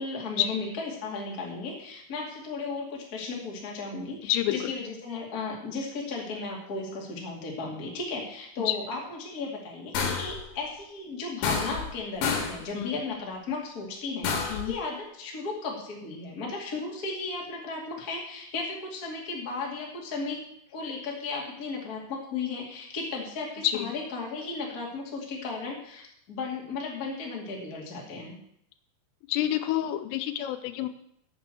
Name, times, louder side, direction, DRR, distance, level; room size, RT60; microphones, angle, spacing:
voice 1, 0.0-20.4 20.7-28.4, left 3 dB, 40° left, -2 dB, 1.3 m, -35 dB
voice 2, 4.2-4.7 8.6-8.8 12.7-12.9 14.5-14.7 23.6-23.9 29.3-30.9, left 13 dB, 85° left, 9 dB, 3.2 m, -28 dB
sound 1, 9.9-10.4 11.4-11.9 12.2-12.6 14.2-14.7, left 5 dB, 70° left, 3.7 m, -29 dB
9.0 x 6.9 x 7.8 m, 0.72 s
omnidirectional pair, 5.9 m